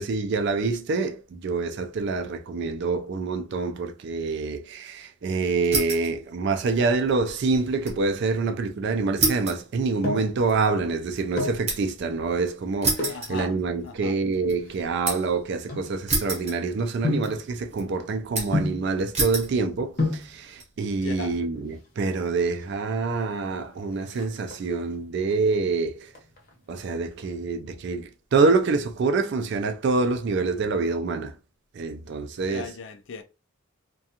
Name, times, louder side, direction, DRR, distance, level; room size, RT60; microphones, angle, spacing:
voice 1, 0.0-26.1 26.7-31.4 31.7-32.7, right 4 dB, 55° right, 0.3 m, -26 dB
sound 1, 5.6-6.2 6.5-8.0 8.3-8.4 9.2-12.0 12.8-14.0 14.3-15.4 16.1-17.0 17.2-17.8 18.3-18.7 19.1-19.5 20.2-20.6, right 3 dB, 30° right, 0.9 m, -29 dB
sound 2, 9.6-10.4 11.2-11.7 12.9-13.3 14.0-16.4 17.0-17.4 18.5-18.9 19.7-19.8 20.0-20.3 21.5-22.0 22.3-22.4 22.6-22.8 23.1-23.5 23.8-24.9 25.3-25.7 26.1-27.3 27.5-27.6, left 2 dB, 45° left, 0.8 m, -30 dB
voice 2, 13.1-13.5 13.8-14.2 21.0-21.4 32.4-33.2, left 4 dB, 60° left, 0.4 m, -37 dB
2.4 x 2.3 x 2.7 m
head